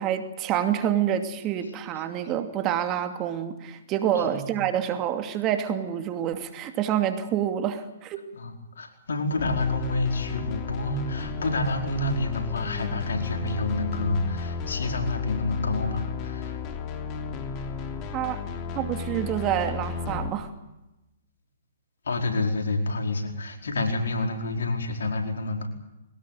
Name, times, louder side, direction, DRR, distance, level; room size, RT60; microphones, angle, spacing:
voice 1, 0.0-8.2 18.1-18.5 18.7-20.5, right 10 dB, 30° right, 8 dB, 2.6 m, -27 dB
voice 2, 4.1-4.6 8.3-16.6 22.0-25.7, left 2 dB, 75° left, 4 dB, 4.8 m, -28 dB
sound 1, 9.4-20.3, left 6 dB, 35° left, 3.1 m, -33 dB
22.5 x 19.0 x 9.2 m, 0.99 s
hypercardioid pair, 130°, 0 cm